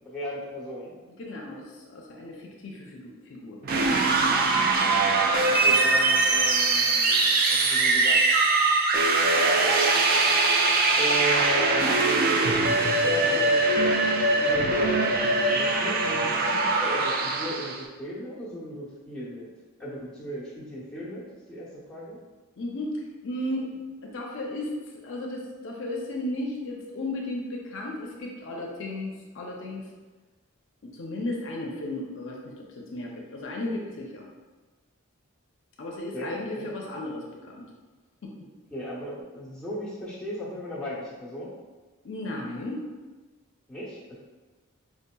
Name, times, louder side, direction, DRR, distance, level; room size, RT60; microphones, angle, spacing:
voice 1, 0.0-0.9 5.6-8.2 11.0-12.4 12.8-13.6 14.3-19.5 19.8-22.2 36.1-36.7 38.7-41.5 43.7-44.2, equal, 5° left, -9 dB, 0.8 m, -36 dB
voice 2, 1.1-3.6 22.6-29.8 31.0-34.2 35.8-37.6 38.2-38.3 42.0-42.8, left 1 dB, 60° left, -1 dB, 0.5 m, -35 dB
sound 1, 3.6-17.8, right 3 dB, 45° right, 0.3 m, -22 dB
4.6 x 2.7 x 2.2 m, 1.3 s
head